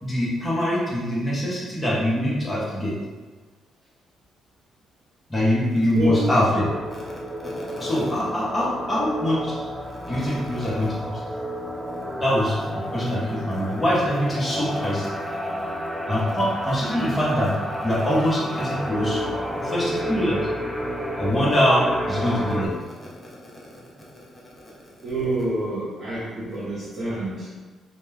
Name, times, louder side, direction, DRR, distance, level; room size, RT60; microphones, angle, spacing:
voice 1, 0.0-3.0 5.3-7.0 7.4-9.6 10.0-11.2 12.2-15.1 16.1-19.2 19.6-20.4 21.2-22.8 23.0-23.1, equal, 20° left, -6 dB, 0.9 m, -24 dB
voice 2, 5.9-6.3 25.0-27.5, right 1 dB, 50° right, -10 dB, 0.7 m, -27 dB
sound 1, 6.6-22.7, equal, 5° right, 0.4 m, -31 dB
2.3 x 2.2 x 3.2 m, 1.3 s
cardioid pair, 90°, 0 cm